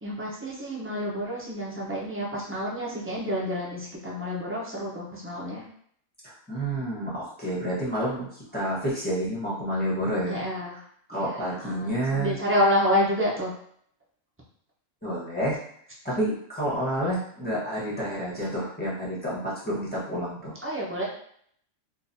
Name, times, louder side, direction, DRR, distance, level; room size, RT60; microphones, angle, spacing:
voice 1, 0.0-5.6 10.3-10.7 11.2-13.5 20.6-21.0, equal, 15° right, -4 dB, 0.5 m, -28 dB
voice 2, 6.2-10.4 11.1-12.4 15.0-15.6 16.0-20.5, right 1 dB, 5° left, -8 dB, 1.1 m, -29 dB
3.9 x 2.5 x 2.7 m, 0.64 s
omnidirectional pair, 1.5 m